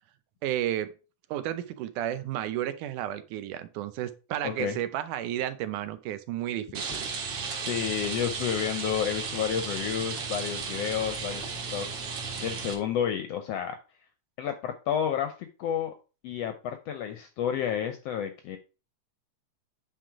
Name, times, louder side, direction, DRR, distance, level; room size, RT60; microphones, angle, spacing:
voice 1, 0.4-0.9 1.3-7.1, right 12 dB, 85° right, 2.2 m, -32 dB
voice 2, 4.4-4.8 7.7-11.5 11.7-11.9 12.4-13.8 14.4-15.9 16.2-18.6, left 9 dB, 75° left, 1.5 m, -30 dB
Rain, 6.7-12.7, right 5 dB, 60° right, 2.2 m, -34 dB
9.2 x 3.9 x 4.7 m
omnidirectional pair, 3.5 m